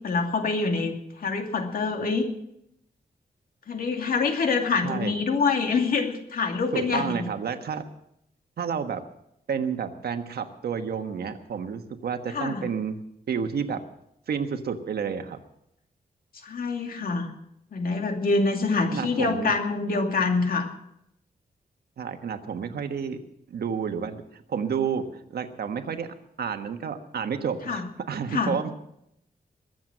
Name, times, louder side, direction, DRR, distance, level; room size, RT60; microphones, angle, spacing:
voice 1, 0.0-2.3 3.7-7.0 12.3-12.7 16.4-17.3 17.7-20.7 27.7-27.8 28.3-28.5, left 4 dB, 65° left, 4 dB, 2.5 m, -25 dB
voice 2, 4.8-5.2 6.7-7.8 8.6-9.0 9.5-13.0 13.3-13.8 14.3-15.4 18.9-19.5 22.0-23.2 23.5-28.7, right 6 dB, 90° right, 7 dB, 1.4 m, -30 dB
21.5 x 7.8 x 7.6 m, 0.78 s
wide cardioid pair, 165°, 16 cm